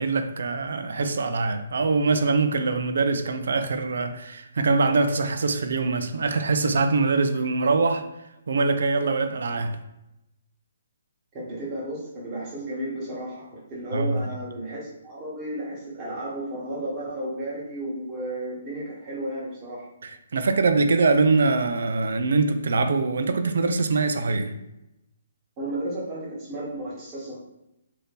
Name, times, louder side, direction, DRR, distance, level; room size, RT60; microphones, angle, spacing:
voice 1, 0.0-8.1 8.5-9.8 13.9-14.2 20.0-24.6, right 3 dB, 75° right, 0.3 m, -23 dB
voice 2, 11.3-19.9 25.6-27.4, right 1 dB, 25° right, 1.1 m, -33 dB
2.7 x 2.6 x 3.4 m
hypercardioid pair, 155°, 0 cm